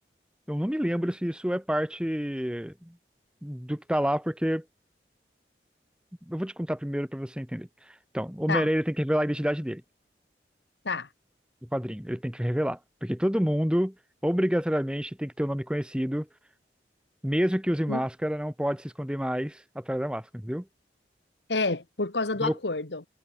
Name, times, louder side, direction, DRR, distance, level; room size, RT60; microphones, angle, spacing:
voice 1, 0.5-2.9 3.4-4.6 6.3-9.8 11.7-13.9 14.2-16.3 17.2-20.6 22.4-22.6, equal, 5° right, 1.0 m, -28 dB
voice 2, 21.5-23.1, left 3 dB, 80° left, 1.8 m, -29 dB
head